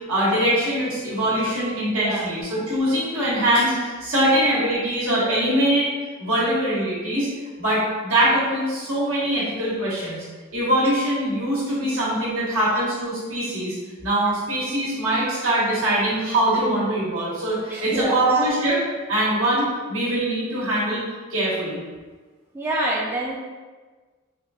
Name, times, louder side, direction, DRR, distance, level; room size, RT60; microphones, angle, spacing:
voice 1, 0.1-5.9 6.2-7.3 7.6-10.2 10.5-13.8 14.0-18.8 19.1-21.0 21.3-21.8, right 1 dB, 85° right, -7 dB, 1.2 m, -22 dB
voice 2, 1.9-2.2 17.7-18.4 22.5-23.4, right 1 dB, 10° right, -4 dB, 0.3 m, -26 dB
3.4 x 2.5 x 2.3 m, 1.4 s
head